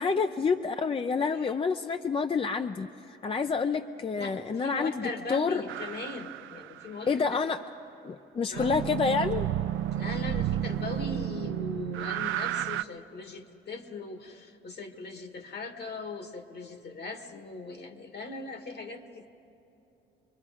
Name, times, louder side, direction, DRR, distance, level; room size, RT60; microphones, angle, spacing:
voice 1, 0.0-5.6 7.1-7.6 8.0-9.5, left 5 dB, 30° left, 8 dB, 0.5 m, -28 dB
voice 2, 4.1-7.4 8.5-8.9 9.9-19.3, left 3 dB, 55° left, 6 dB, 1.7 m, -39 dB
sound 1, 5.7-7.1 8.5-12.8, right 12 dB, 80° right, 0.5 m, -32 dB
25.5 x 22.0 x 4.9 m, 2.9 s
cardioid pair, 90°, 20 cm